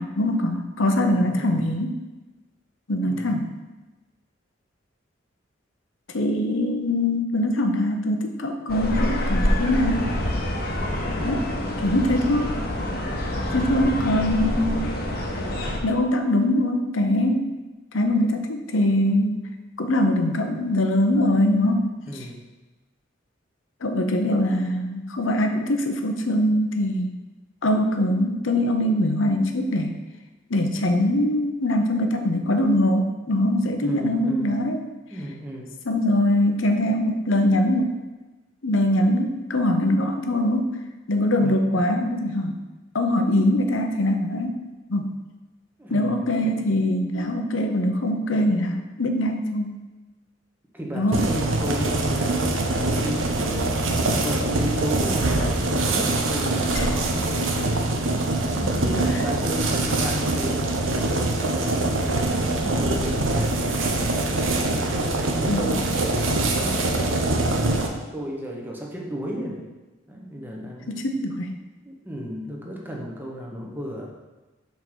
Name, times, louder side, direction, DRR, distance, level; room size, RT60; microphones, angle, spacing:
voice 1, 0.0-2.0 2.9-3.5 6.1-10.2 11.2-11.5 11.8-12.6 13.4-14.9 15.8-17.5 17.9-19.5 19.8-21.9 23.8-27.1 27.6-30.0 30.5-34.8 35.9-38.0 38.6-40.7 41.1-42.6 42.9-44.6 44.9-45.2 45.9-49.8 50.9-51.2 56.7-56.9 65.5-65.8 70.9-71.5, left 1 dB, 85° left, 5 dB, 0.9 m, -22 dB
voice 2, 0.7-1.8 3.0-3.4 10.9-11.4 22.1-22.5 33.8-34.5 35.1-35.7 41.4-41.7 45.8-46.4 50.7-57.4 58.5-61.0 61.5-63.7 64.7-67.5 68.1-69.7 70.1-71.0 71.8-74.1, equal, 10° right, -1 dB, 1.1 m, -34 dB
sound 1, 8.7-15.8, left 1 dB, 50° left, 1.1 m, -26 dB
sound 2, 51.1-67.9, right 2 dB, 85° right, 0.9 m, -24 dB
5.6 x 4.6 x 6.2 m, 1.2 s
head